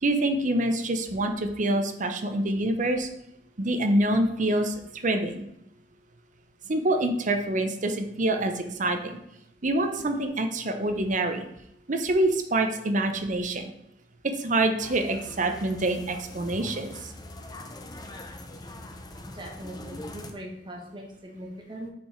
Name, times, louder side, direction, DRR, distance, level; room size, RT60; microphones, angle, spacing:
voice 1, 0.0-3.1 3.6-4.7 5.0-5.4 6.7-9.2 9.6-11.4 11.9-13.7 14.4-17.1, right 1 dB, 45° right, 6 dB, 0.7 m, -26 dB
sound 1, 14.8-20.3, left 1 dB, 20° left, 0.7 m, -43 dB
voice 2, 19.3-21.9, right 1 dB, 25° right, -1 dB, 1.4 m, -41 dB
5.9 x 4.8 x 4.5 m, 0.81 s
head